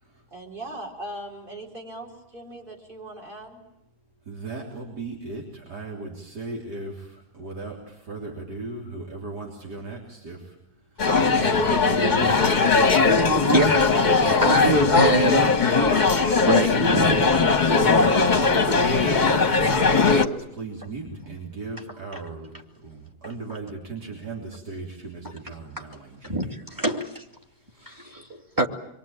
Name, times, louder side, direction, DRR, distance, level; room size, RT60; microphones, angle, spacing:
voice 1, 0.3-3.6 15.3-16.0, right 1 dB, 30° right, 1 dB, 5.0 m, -38 dB
voice 2, 4.3-10.6 11.0-11.1 11.3-13.7 14.2-14.8 17.0-22.5 22.8-26.5 27.7-28.1, right 3 dB, 80° right, -1 dB, 4.1 m, -36 dB
sound 1, 11.0-20.3, left 4 dB, 30° left, 1.3 m, -19 dB
voice 3, 14.4-15.4 16.5-17.3 22.1-22.2 25.2-25.3 25.8-25.9 26.2-27.2 27.8-28.7, right 1 dB, 10° right, 3 dB, 2.6 m, -25 dB
27.5 x 23.0 x 9.0 m, 0.80 s
omnidirectional pair, 1.7 m